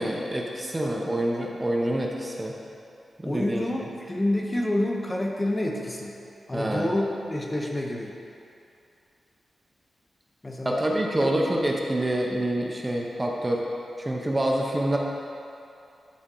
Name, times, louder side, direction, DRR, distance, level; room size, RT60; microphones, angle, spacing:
voice 1, 0.0-2.6 3.2-3.6 6.5-6.9 10.6-13.6 14.0-15.0, right 1 dB, 15° right, -1 dB, 0.7 m, -26 dB
voice 2, 3.2-6.2 6.5-8.1 10.4-10.9 11.2-11.4, left 1 dB, 20° left, -1 dB, 0.7 m, -28 dB
12.5 x 4.2 x 3.8 m, 2.7 s
wide cardioid pair, 160°, 0 cm